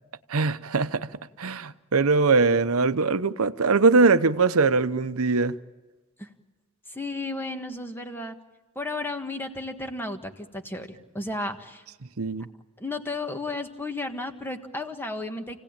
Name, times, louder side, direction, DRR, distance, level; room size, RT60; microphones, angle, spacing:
voice 1, 0.3-5.5 12.2-12.5, right 4 dB, 85° right, 0.8 m, -22 dB
voice 2, 6.9-8.4 8.8-11.8 12.8-15.6, left 2 dB, 10° left, 1.6 m, -33 dB
28.5 x 17.5 x 8.9 m
head